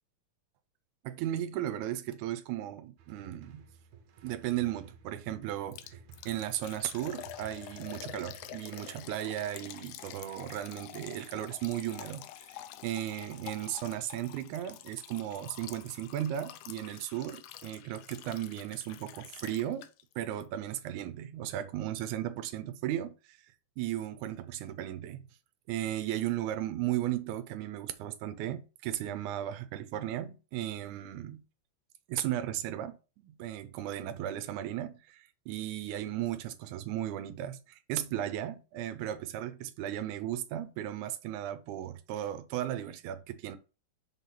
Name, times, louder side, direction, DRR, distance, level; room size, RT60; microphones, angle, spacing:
voice 1, 1.0-3.7 4.2-6.0 6.3-19.9 20.2-23.5 23.8-25.2 25.7-31.4 32.1-43.6, right 12 dB, 90° right, 2.1 m, -36 dB
sound 1, 3.0-8.6, right 7 dB, 75° right, 2.1 m, -55 dB
Liquid, 5.7-20.1 20.4-20.5 21.0-21.1, left 12 dB, 80° left, 2.0 m, -48 dB
5.3 x 4.1 x 5.7 m
omnidirectional pair, 3.4 m